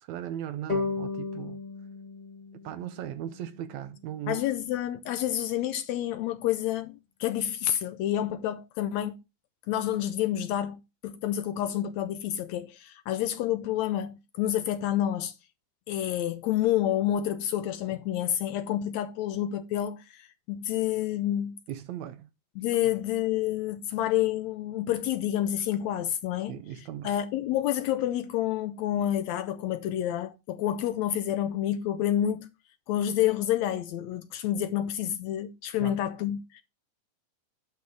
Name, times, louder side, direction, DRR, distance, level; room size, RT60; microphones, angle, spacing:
voice 1, 0.0-1.6 2.6-4.4 21.7-22.3 26.5-27.1 35.8-36.0, right 11 dB, 80° right, 1.8 m, -37 dB
sound 1, 0.7-4.0, left 4 dB, 15° left, 1.5 m, -35 dB
voice 2, 4.3-9.2 9.7-15.3 15.9-21.6 22.6-26.6 27.0-32.5 32.9-36.6, left 12 dB, 80° left, 1.7 m, -29 dB
10.5 x 3.5 x 6.4 m
omnidirectional pair, 3.6 m